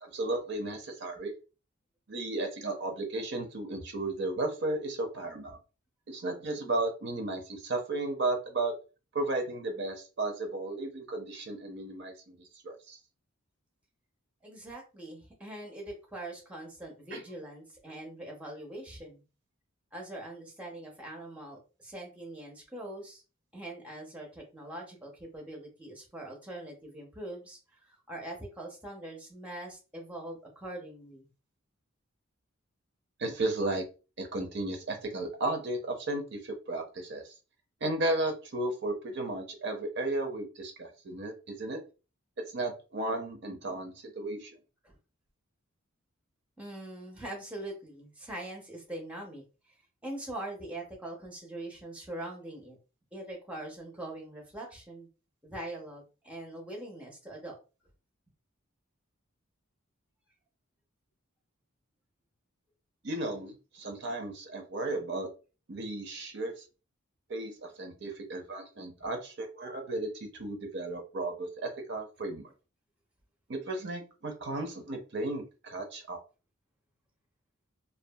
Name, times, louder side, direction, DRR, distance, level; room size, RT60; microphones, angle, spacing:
voice 1, 0.0-1.3 2.1-5.6 6.1-8.7 9.1-12.4 12.6-13.0 17.1-17.2 33.2-33.8 34.2-37.2 37.8-41.8 42.5-44.5 63.0-65.3 65.7-66.5 67.3-70.1 70.4-72.5 73.5-76.2, right 2 dB, 55° right, 3 dB, 0.6 m, -34 dB
voice 2, 14.4-19.2 19.9-23.2 23.5-31.3 44.8-45.0 46.6-49.4 50.0-52.8 53.1-55.1 55.4-57.6, right 1 dB, 5° right, 0 dB, 0.6 m, -42 dB
2.6 x 2.3 x 2.2 m, 0.33 s
head